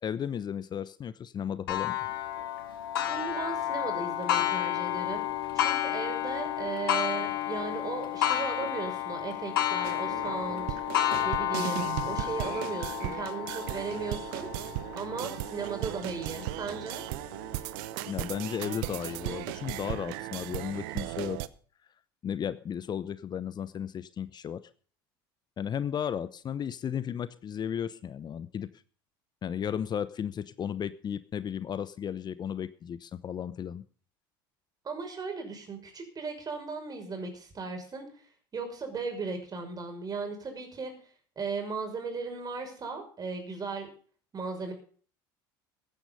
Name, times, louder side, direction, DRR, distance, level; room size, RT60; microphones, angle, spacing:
voice 1, 0.0-2.0 18.1-21.4 22.2-24.6 25.6-28.7 29.4-33.8, left 8 dB, 35° left, 15 dB, 0.9 m, -34 dB
Clock, 1.7-17.0 17.6-17.7 18.2-18.3 19.3-19.4, left 12 dB, 85° left, 2.3 m, -31 dB
voice 2, 3.0-10.8 11.2-17.0 34.8-38.1 38.5-40.9 41.4-43.9 44.3-44.7, right 4 dB, 35° right, 5 dB, 6.0 m, -36 dB
sound 1, 9.8-21.5, right 17 dB, 70° right, 0.9 m, -37 dB
15.5 x 10.5 x 5.4 m, 0.44 s
hypercardioid pair, 80°, 12 cm